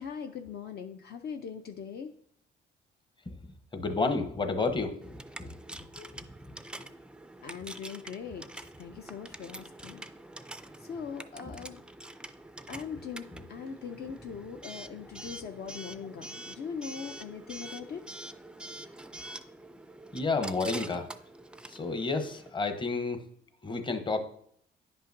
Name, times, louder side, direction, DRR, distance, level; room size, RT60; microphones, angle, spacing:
voice 1, 0.0-2.1 7.4-10.1 10.8-11.8 12.7-18.2, left 6 dB, 55° left, 6 dB, 0.5 m, -41 dB
voice 2, 3.3-6.6 7.7-7.8 13.3-13.4 20.1-21.1 21.7-23.2 23.6-24.2, left 3 dB, 25° left, 8 dB, 0.8 m, -32 dB
Coin (dropping) / Alarm, 5.0-22.5, right 1 dB, 5° right, 0.3 m, -46 dB
9.9 x 5.5 x 2.6 m, 0.66 s
cardioid pair, 90°, 20 cm